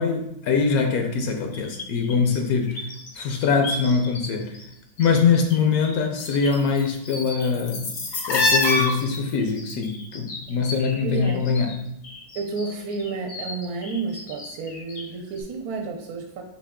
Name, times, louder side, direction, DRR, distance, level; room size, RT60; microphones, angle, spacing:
voice 1, 0.0-2.9 3.1-4.6 5.0-7.9 8.3-11.9, left 5 dB, 75° left, 3 dB, 1.0 m, -23 dB
sound 1, 1.5-4.3 4.5-5.6 5.8-11.8 12.0-15.1 15.4-15.5, left 2 dB, 60° left, 0.5 m, -29 dB
voice 2, 11.0-11.4 12.3-16.4, right 4 dB, 75° right, 2 dB, 1.1 m, -31 dB
4.5 x 2.9 x 3.5 m, 0.82 s
omnidirectional pair, 1.7 m